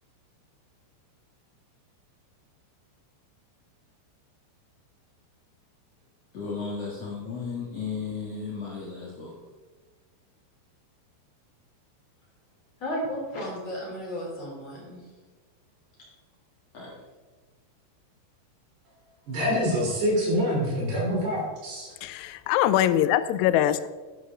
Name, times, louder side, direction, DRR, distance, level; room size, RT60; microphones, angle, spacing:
voice 1, 6.3-9.3 16.7-16.9, left 5 dB, 70° left, 1.5 m, -34 dB
voice 2, 12.8-15.0 16.0-16.1, equal, 35° left, 3.6 m, -34 dB
voice 3, 19.3-21.9, equal, 55° right, 5.2 m, -26 dB
voice 4, 22.0-23.9, left 12 dB, 90° left, 3.3 m, -23 dB
11.0 x 11.0 x 3.7 m
omnidirectional pair, 5.9 m